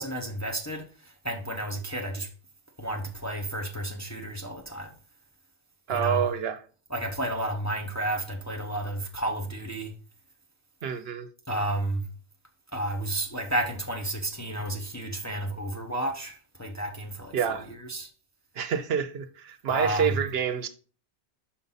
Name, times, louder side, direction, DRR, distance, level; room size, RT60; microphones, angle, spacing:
voice 1, 0.0-2.3 2.8-4.9 5.9-6.3 6.9-9.9 11.5-12.1 12.7-18.1 19.7-20.2, right 1 dB, 20° left, 0.6 m, -32 dB
voice 2, 5.9-6.6 10.8-11.3 17.3-17.7 18.6-20.7, right 8 dB, 65° right, 0.8 m, -28 dB
5.8 x 5.3 x 4.0 m
omnidirectional pair, 1.1 m